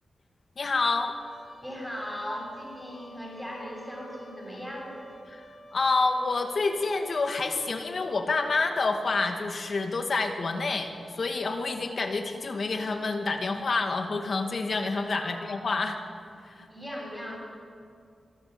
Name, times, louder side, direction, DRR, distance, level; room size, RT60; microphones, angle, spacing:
voice 1, 0.6-1.1 5.3-16.0 16.4-16.7, left 3 dB, 55° left, 5 dB, 2.2 m, -28 dB
Trumpet, 1.1-8.0, equal, 35° left, 5.7 m, -51 dB
voice 2, 1.6-5.0 15.2-15.7 16.5-17.4, equal, ahead, -4 dB, 7.6 m, -38 dB
25.0 x 13.0 x 8.2 m, 2.3 s
cardioid pair, 85°, 0 cm